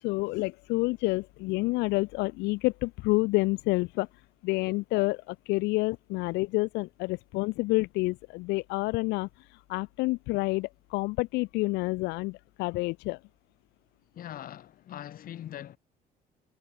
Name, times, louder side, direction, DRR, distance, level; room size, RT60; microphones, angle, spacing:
voice 1, 0.0-4.1 4.4-13.2, left 23 dB, 90° left, 0.4 m, -29 dB
voice 2, 14.1-15.8, left 11 dB, 55° left, 1.7 m, -41 dB
cardioid pair, 110°, 17 cm